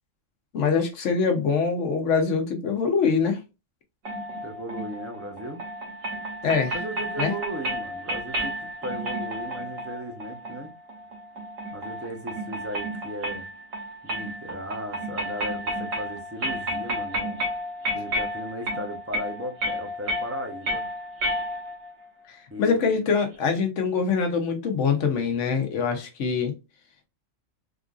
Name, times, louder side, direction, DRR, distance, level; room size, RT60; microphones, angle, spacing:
voice 1, 0.5-3.4 6.4-6.7 7.2-7.3 22.3-26.5, left 5 dB, 70° left, 1.1 m, -24 dB
sound 1, 4.0-21.9, equal, 80° right, 1.6 m, -32 dB
voice 2, 4.4-5.6 6.7-10.7 11.7-13.5 14.0-17.4 17.9-20.8 22.5-22.9, equal, 15° right, 0.6 m, -36 dB
3.8 x 2.5 x 2.4 m
omnidirectional pair, 1.3 m